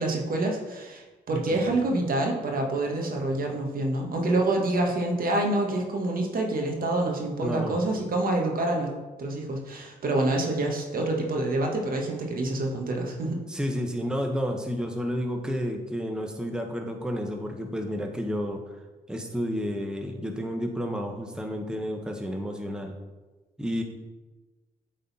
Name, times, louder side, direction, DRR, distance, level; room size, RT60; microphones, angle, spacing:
voice 1, 0.0-8.9 9.2-13.4, right 2 dB, 60° right, 1 dB, 1.4 m, -27 dB
voice 2, 7.4-7.8 13.5-18.8 19.1-22.9 23.6-23.8, equal, 5° right, 3 dB, 0.9 m, -31 dB
8.2 x 4.0 x 4.1 m, 1.2 s
cardioid pair, 65°, 17 cm